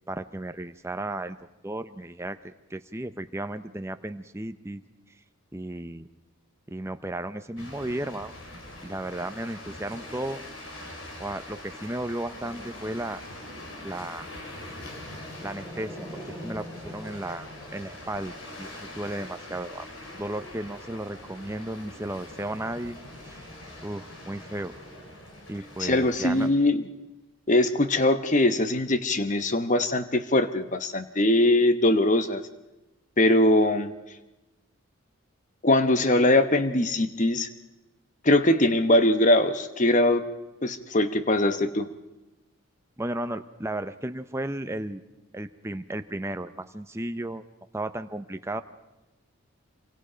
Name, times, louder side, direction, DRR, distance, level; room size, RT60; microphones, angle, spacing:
voice 1, 0.1-1.4 1.6-4.8 5.5-6.1 6.7-8.3 8.8-10.4 11.2-13.2 13.8-14.3 15.4-17.5 17.7-18.3 18.6-19.9 20.1-23.0 23.2-23.5 23.8-24.7 25.5-26.5 43.0-45.0 45.3-47.4 47.7-48.6, right 1 dB, 10° right, 9 dB, 0.7 m, -34 dB
sound 1, 7.6-26.5, left 1 dB, 60° left, 4.2 m, -44 dB
Growling, 12.3-14.0 14.6-18.7 19.7-26.2, equal, 15° left, 4.6 m, -46 dB
voice 2, 25.8-26.8 27.5-32.4 33.2-33.9 35.6-37.5 38.2-40.2 40.6-41.9, left 1 dB, 35° left, 10 dB, 1.0 m, -22 dB
26.5 x 24.0 x 5.1 m, 1.0 s
head